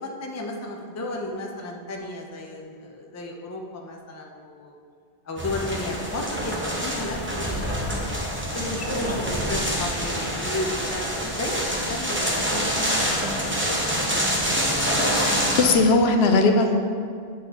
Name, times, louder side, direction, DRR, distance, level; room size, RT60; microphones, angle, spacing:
voice 1, 0.0-4.7 5.3-7.9 8.5-11.1 11.4-13.2, left 2 dB, 20° left, 1 dB, 0.4 m, -33 dB
sound 1, 5.4-15.8, equal, 10° right, 0.8 m, -26 dB
voice 2, 14.8-16.8, left 3 dB, 70° left, 4 dB, 0.8 m, -20 dB
8.5 x 6.1 x 3.0 m, 2.2 s
omnidirectional pair, 1.1 m